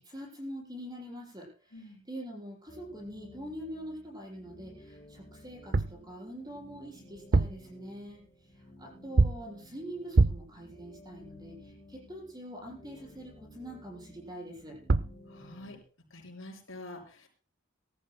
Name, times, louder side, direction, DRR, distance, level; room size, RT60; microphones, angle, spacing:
voice 1, 0.0-1.7 2.1-8.2 8.5-14.8, equal, 20° right, -2 dB, 7.0 m, -44 dB
voice 2, 1.7-2.0 15.3-15.8 16.1-17.3, left 2 dB, 85° left, 0 dB, 6.0 m, -46 dB
sound 1, 2.7-15.8, left 1 dB, 25° left, 4.7 m, -55 dB
sound 2, 5.5-6.0 7.1-7.7 9.2-9.5 10.1-10.6 14.6-14.7 14.9-15.2, right 3 dB, 50° right, 0.5 m, -25 dB
23.5 x 14.0 x 2.2 m, 0.36 s
head